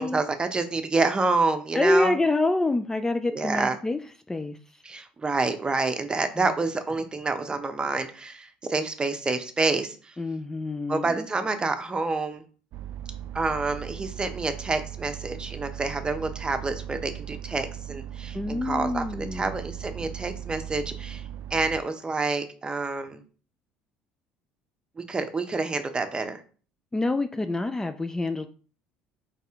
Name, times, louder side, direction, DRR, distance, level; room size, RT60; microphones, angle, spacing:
voice 1, 0.0-2.1 3.3-3.8 4.8-10.1 10.9-12.4 13.3-19.0 19.3-21.2 21.5-23.2 25.0-26.4, right 3 dB, 25° right, 8 dB, 0.8 m, -28 dB
voice 2, 1.7-4.0 4.3-4.8 6.4-6.5 10.2-11.3 18.3-19.5 26.9-28.5, left 2 dB, 15° left, 9 dB, 0.4 m, -26 dB
sound 1, 12.7-21.8, right 10 dB, 60° right, 0.4 m, -38 dB
4.1 x 3.4 x 3.6 m, 0.39 s
hypercardioid pair, 70°, 4 cm